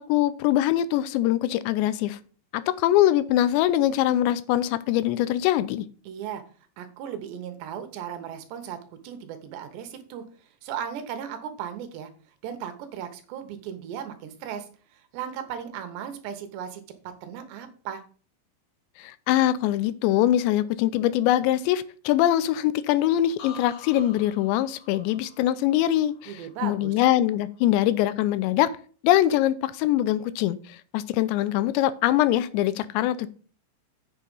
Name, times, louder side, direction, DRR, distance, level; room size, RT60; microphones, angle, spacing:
voice 1, 0.0-2.2 2.5-5.9 19.0-28.7 29.0-30.6 30.9-33.3, left 13 dB, 85° left, 15 dB, 2.8 m, -23 dB
voice 2, 6.1-6.4 6.8-10.2 10.6-12.1 12.4-16.8 17.2-18.0 26.3-26.9, right 9 dB, 80° right, 8 dB, 3.2 m, -36 dB
sound 1, 23.4-27.2 27.6-28.1, left 7 dB, 60° left, 2.0 m, -48 dB
8.2 x 6.6 x 5.4 m, 0.41 s
omnidirectional pair, 5.1 m